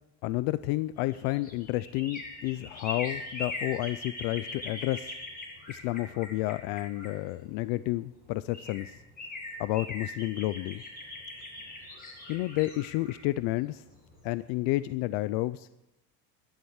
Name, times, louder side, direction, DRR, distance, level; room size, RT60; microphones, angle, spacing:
voice 1, 0.2-5.1 5.7-8.9 9.6-10.8 12.3-13.8 14.2-15.7, left 18 dB, 55° left, 15 dB, 0.5 m, -31 dB
sound 1, 0.9-7.7 8.2-8.3 8.5-14.3 14.6-14.7, left 2 dB, 20° left, 7.4 m, -41 dB
12.0 x 11.5 x 8.0 m, 0.95 s
cardioid pair, 165°, 42 cm